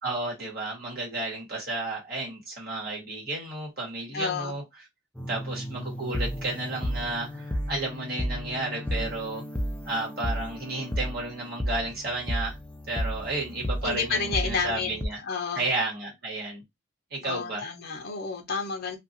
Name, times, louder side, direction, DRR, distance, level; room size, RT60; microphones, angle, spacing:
voice 1, 0.0-4.6 5.3-9.4 9.8-12.6 12.9-15.2 15.5-16.6 17.1-17.7, right 2 dB, 50° right, 1.6 m, -32 dB
voice 2, 4.1-4.5 13.8-15.0 15.3-15.7 17.2-19.0, left 5 dB, 50° left, 0.6 m, -30 dB
sound 1, 5.2-15.1, equal, 5° left, 0.4 m, -33 dB
2.7 x 2.5 x 2.6 m
head